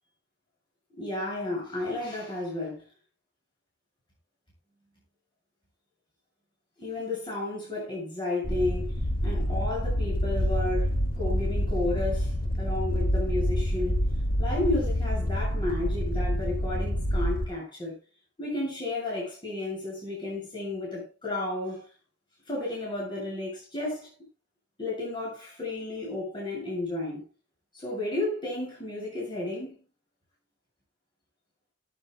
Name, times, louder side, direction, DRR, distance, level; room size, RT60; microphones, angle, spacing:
voice 1, 1.0-2.8 6.8-14.0 14.4-17.9 18.4-21.9 22.5-24.1 24.8-27.2 27.7-29.8, left 2 dB, 25° left, 7.5 m, -32 dB
sound 1, 8.4-17.5, equal, 50° left, 1.7 m, -27 dB
18.5 x 10.5 x 2.2 m
head